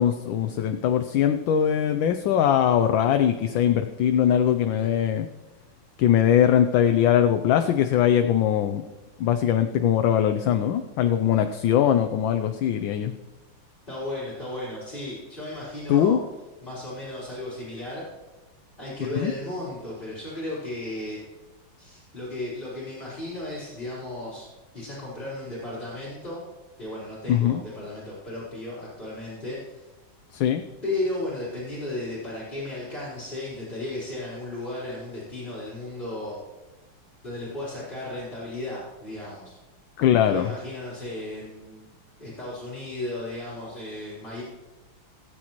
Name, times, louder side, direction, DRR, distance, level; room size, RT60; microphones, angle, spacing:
voice 1, 0.0-5.3 6.0-8.8 9.2-13.1 15.9-16.2 19.1-19.3 27.3-27.6 30.3-30.6 40.0-40.5, left 9 dB, 70° left, 8 dB, 1.3 m, -21 dB
voice 2, 13.9-16.2 16.6-18.0 18.8-21.2 21.8-24.5 24.7-26.4 26.8-29.8 30.8-36.4 37.2-39.6 40.2-41.9 42.2-44.4, left 1 dB, 20° left, -9 dB, 4.0 m, -34 dB
19.0 x 8.6 x 3.1 m, 1.2 s
omnidirectional pair, 2.4 m